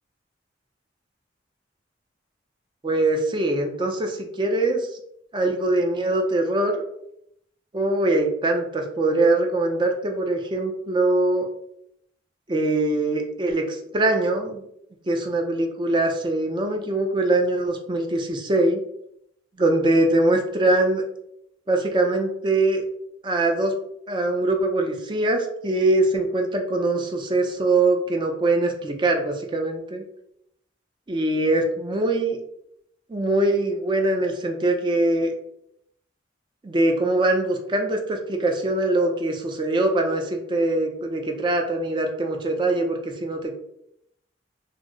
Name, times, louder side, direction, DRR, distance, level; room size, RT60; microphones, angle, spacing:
voice 1, 2.8-4.9 5.3-6.7 7.7-11.5 12.5-14.6 15.1-18.8 19.6-21.0 21.7-22.8 23.2-23.7 24.1-30.0 31.1-32.4 33.1-35.3 36.6-43.5, right 2 dB, 25° right, 3 dB, 0.4 m, -22 dB
2.5 x 2.0 x 3.7 m, 0.75 s
head